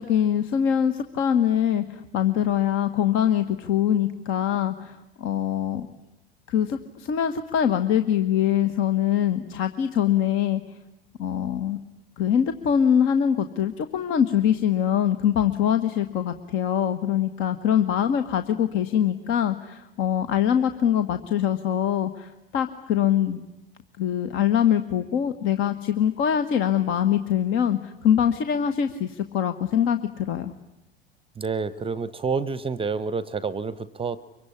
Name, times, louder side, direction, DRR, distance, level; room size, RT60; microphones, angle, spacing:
voice 1, 0.0-5.9 6.5-10.6 11.2-11.8 12.2-23.4 24.0-30.5, left 9 dB, 45° left, 10 dB, 1.5 m, -23 dB
voice 2, 31.4-34.2, right 5 dB, 20° right, 17 dB, 0.9 m, -28 dB
25.5 x 23.5 x 9.9 m, 0.94 s
figure-of-eight pair, 75°, 29 cm